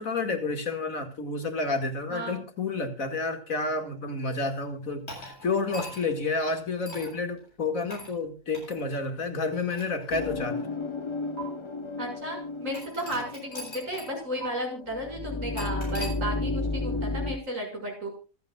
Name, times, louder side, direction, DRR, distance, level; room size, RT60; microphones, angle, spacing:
voice 1, 0.0-10.6, left 3 dB, 80° left, 6 dB, 2.6 m, -30 dB
sound 1, 5.1-6.2 6.9-7.2 7.9-8.1 8.5-8.8 9.5-10.6 11.4-11.5 12.7-14.2 14.4-14.5 15.6-16.2, equal, 50° left, 8.1 m, -41 dB
sound 2, 10.1-17.4, left 3 dB, 25° left, 1.0 m, -33 dB
voice 2, 12.0-18.1, equal, 70° right, 1 dB, 7.0 m, -34 dB
26.5 x 9.3 x 2.4 m, 0.34 s
omnidirectional pair, 1.4 m